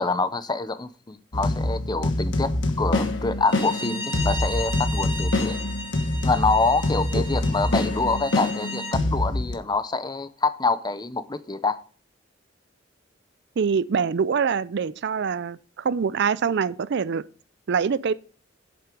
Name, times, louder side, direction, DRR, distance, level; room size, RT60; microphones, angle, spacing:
voice 1, 0.0-5.6 6.2-11.8, left 3 dB, 20° left, 0.7 m, -26 dB
sound 1, 1.3-9.6, left 1 dB, 70° left, 1.3 m, -25 dB
Bowed string instrument, 3.4-9.0, left 1 dB, 55° left, 3.1 m, -35 dB
voice 2, 13.6-17.2 17.7-18.1, right 6 dB, 60° right, 0.4 m, -24 dB
8.1 x 7.6 x 5.1 m
head